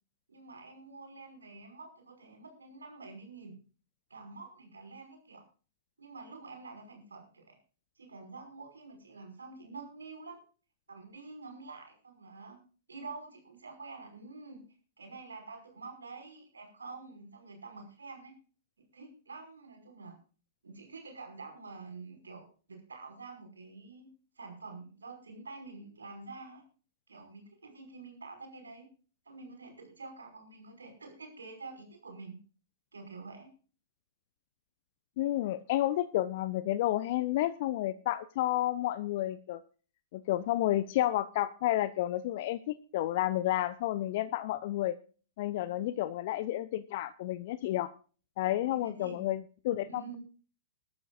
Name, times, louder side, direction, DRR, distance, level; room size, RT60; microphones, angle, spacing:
voice 1, 0.3-3.6 4.1-5.4 6.0-7.6 8.0-10.4 10.9-12.6 12.9-14.6 15.0-18.3 18.9-20.2 20.6-24.1 24.4-26.6 27.1-28.9 29.3-32.4 32.9-33.5 45.7-46.0 48.6-49.2 49.9-50.2, right 3 dB, 75° right, 4 dB, 5.5 m, -47 dB
voice 2, 35.2-39.6 40.1-45.0 45.4-47.9 48.4-50.0, left 14 dB, 45° left, 15 dB, 0.7 m, -31 dB
21.5 x 12.5 x 2.5 m, 0.38 s
figure-of-eight pair, 105°, 0 cm